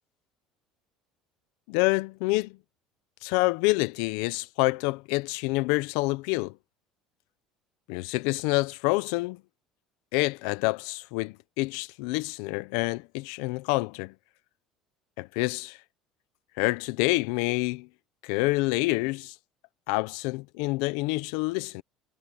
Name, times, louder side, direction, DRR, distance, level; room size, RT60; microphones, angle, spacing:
voice 1, 1.7-2.6 3.2-6.5 7.9-9.4 10.1-14.1 15.2-15.8 16.6-17.9 18.2-19.3 19.9-21.8, left 23 dB, 75° left, 0.7 m, -27 dB
cardioid pair, 175°, 0 cm